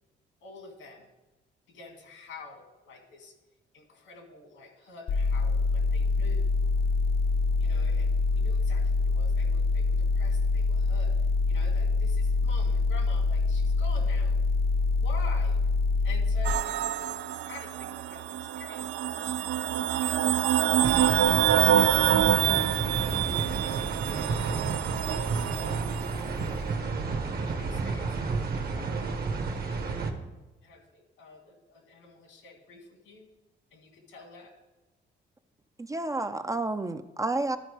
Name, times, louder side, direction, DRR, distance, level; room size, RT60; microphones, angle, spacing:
voice 1, 0.4-1.1 1.7-3.3 3.7-6.5 7.6-14.4 14.9-15.6 16.0-20.4 21.4-24.6 25.0-25.9 27.0-29.1 29.5-30.2 30.6-33.3 33.7-34.5, left 3 dB, 80° left, 3 dB, 1.9 m, -48 dB
sound 1, 5.1-16.5, left 3 dB, 55° left, 0.7 m, -25 dB
sound 2, 16.4-26.2, right 12 dB, 80° right, 0.4 m, -26 dB
sound 3, 20.8-30.1, right 4 dB, 50° right, 1.1 m, -31 dB
voice 2, 35.8-37.6, right 2 dB, 15° right, 10 dB, 0.4 m, -30 dB
12.0 x 4.4 x 4.8 m, 1.1 s
cardioid pair, 90°, 20 cm